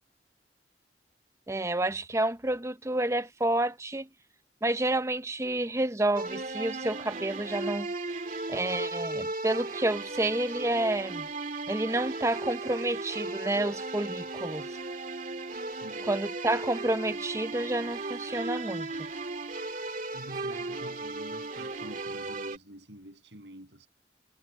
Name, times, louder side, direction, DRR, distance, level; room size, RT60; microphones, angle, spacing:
voice 1, 1.5-4.1 4.6-7.9 8.5-11.3 11.7-14.7 16.1-19.1, right 1 dB, 15° right, 0.6 m, -29 dB
sound 1, 6.2-22.6, right 2 dB, 45° right, 2.5 m, -36 dB
voice 2, 15.6-16.5 20.1-23.9, right 1 dB, 80° right, 7.8 m, -48 dB
head